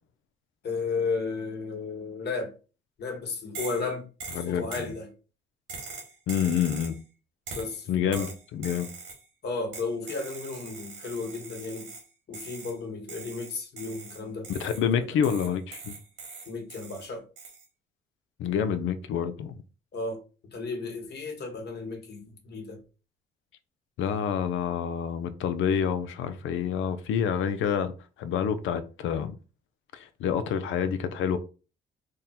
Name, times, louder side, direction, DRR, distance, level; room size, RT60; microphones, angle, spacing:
voice 1, 0.6-2.5 3.0-4.1 4.4-5.1 7.5-8.3 9.4-11.9 12.3-14.5 15.0-15.1 16.5-17.2 19.9-20.2 20.5-22.8, left 4 dB, 55° left, 1.3 m, -34 dB
sound 1, 3.5-3.9 4.2-4.9 5.7-7.0 7.5-7.8 8.1-9.2 9.7-12.1 12.3-12.8 13.1-14.9 15.2-17.1 17.4-17.6, right 4 dB, 85° right, 1.7 m, -42 dB
voice 2, 4.3-4.7 6.3-7.0 7.9-8.9 14.5-16.0 18.4-19.6 24.0-29.3 29.9-31.4, left 8 dB, 80° left, 0.6 m, -28 dB
3.6 x 2.3 x 4.2 m
cardioid pair, 90°, 20 cm